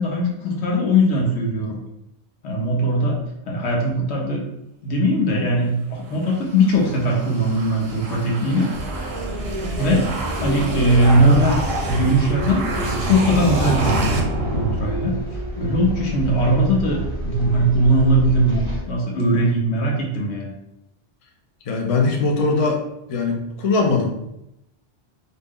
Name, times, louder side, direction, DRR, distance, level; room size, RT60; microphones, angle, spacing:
voice 1, 0.0-1.8 2.4-3.2 3.5-4.4 4.8-8.7 9.7-10.1 10.4-11.6 11.9-14.2 14.5-20.5, equal, 75° left, -1 dB, 1.0 m, -20 dB
sound 1, 6.1-15.5, right 1 dB, 65° right, 0.8 m, -27 dB
sound 2, 8.7-18.8, right 1 dB, 15° left, 0.8 m, -29 dB
voice 2, 21.7-22.8 23.1-24.3, left 3 dB, 50° left, 1 dB, 0.4 m, -21 dB
2.7 x 2.0 x 3.5 m, 0.83 s
omnidirectional pair, 1.1 m